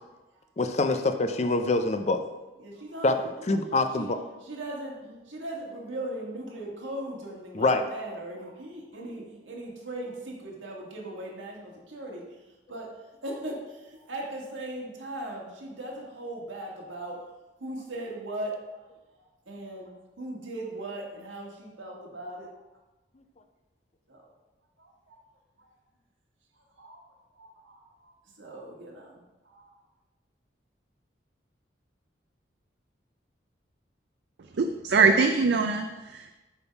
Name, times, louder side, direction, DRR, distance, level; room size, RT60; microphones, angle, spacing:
voice 1, 0.6-2.2 3.0-3.1 3.5-4.2 7.5-7.8, left 2 dB, 35° left, 8 dB, 0.4 m, -25 dB
voice 2, 2.6-12.9 13.2-17.2 17.6-22.6 24.1-24.3 24.8-25.2 25.6-25.7 26.5-27.0 27.3-29.8, right 1 dB, 85° right, -2 dB, 1.7 m, -39 dB
voice 3, 34.6-36.3, right 4 dB, 65° right, 6 dB, 0.4 m, -23 dB
8.0 x 3.7 x 5.7 m, 1.1 s
head